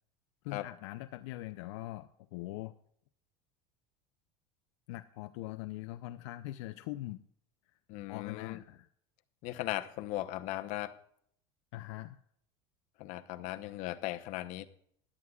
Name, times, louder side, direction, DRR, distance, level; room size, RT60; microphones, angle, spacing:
voice 1, 0.4-2.7 4.9-7.2 8.1-8.9 11.7-12.2, left 16 dB, 80° left, 9 dB, 0.5 m, -42 dB
voice 2, 7.9-8.6 9.4-11.0 13.0-14.7, left 16 dB, 55° left, 9 dB, 0.9 m, -38 dB
16.5 x 11.0 x 2.4 m, 0.66 s
supercardioid pair, 140°, 15 cm